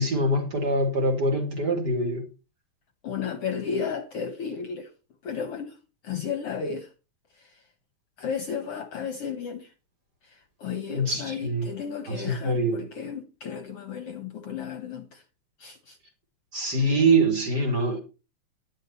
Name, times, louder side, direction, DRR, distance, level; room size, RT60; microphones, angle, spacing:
voice 1, 0.0-2.2 10.9-11.7 12.1-12.8 16.5-18.0, right 2 dB, 35° right, 2.6 m, -24 dB
voice 2, 3.0-4.9 5.2-5.8 6.0-6.9 7.4-7.6 8.2-9.7 10.2-15.2 15.6-16.0, left 6 dB, 60° left, 1.7 m, -33 dB
11.5 x 11.0 x 4.3 m
omnidirectional pair, 3.6 m